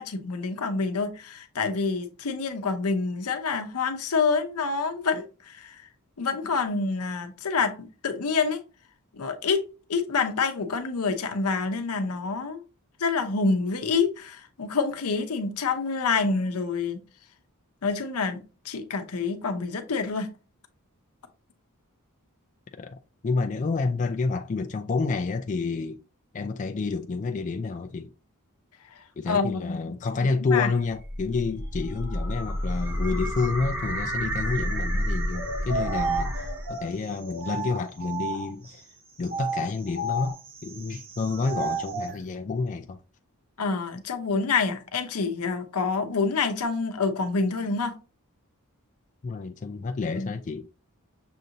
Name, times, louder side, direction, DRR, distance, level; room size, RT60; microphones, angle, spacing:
voice 1, 0.0-5.8 6.2-8.6 9.1-12.6 13.0-17.0 17.8-20.3 29.3-29.9 30.5-30.7 43.6-47.9 50.1-50.3, left 4 dB, 80° left, 0.7 m, -27 dB
voice 2, 23.2-26.0 26.3-28.1 29.2-38.9 39.2-43.0 49.2-50.7, left 4 dB, 35° left, 0.3 m, -29 dB
sound 1, 30.7-36.8, equal, 10° right, 0.9 m, -30 dB
sound 2, 35.3-38.7 39.2-42.2, right 3 dB, 45° right, 0.9 m, -32 dB
6.5 x 2.6 x 2.8 m
head